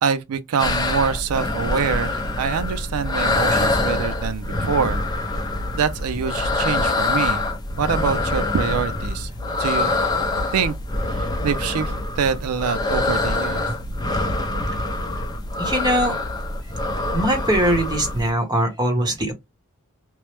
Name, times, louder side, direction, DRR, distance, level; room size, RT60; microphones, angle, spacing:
voice 1, 0.0-5.0 5.7-7.4 7.8-9.3 9.6-10.0 10.5-10.7 11.1-13.7, right 6 dB, 75° right, 0.4 m, -25 dB
sound 1, 0.6-18.3, left 2 dB, 20° left, 0.5 m, -25 dB
voice 2, 15.6-16.2 17.1-19.3, right 1 dB, 20° right, 0.9 m, -21 dB
3.0 x 2.0 x 3.2 m
head